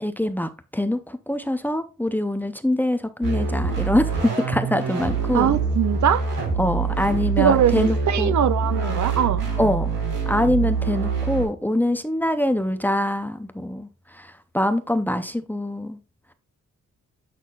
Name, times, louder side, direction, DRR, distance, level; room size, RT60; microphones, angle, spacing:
voice 1, 0.0-5.6 6.6-8.3 9.6-9.9 10.3-16.0, left 1 dB, 5° left, 0.5 m, -24 dB
sound 1, 3.2-11.5, right 4 dB, 85° right, 3.9 m, -25 dB
voice 2, 5.3-6.3 7.4-9.5, right 9 dB, 65° right, 0.5 m, -21 dB
8.3 x 5.9 x 2.3 m
wide cardioid pair, 155°, 31 cm